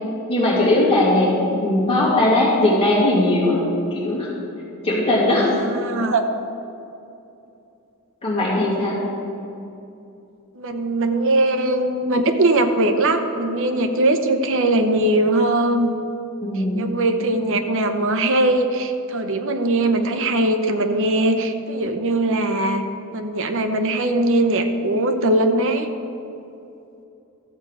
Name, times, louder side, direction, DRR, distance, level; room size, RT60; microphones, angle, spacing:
voice 1, 0.3-1.3 1.6-3.6 3.9-4.3 4.8-5.5 8.2-9.0 16.4-16.9, left 1 dB, 25° left, -6 dB, 2.3 m, -19 dB
voice 2, 5.6-6.3 10.6-15.9 16.8-22.8 23.1-25.9, right 2 dB, 60° right, 7 dB, 0.8 m, -20 dB
13.0 x 7.9 x 4.8 m, 2.8 s
head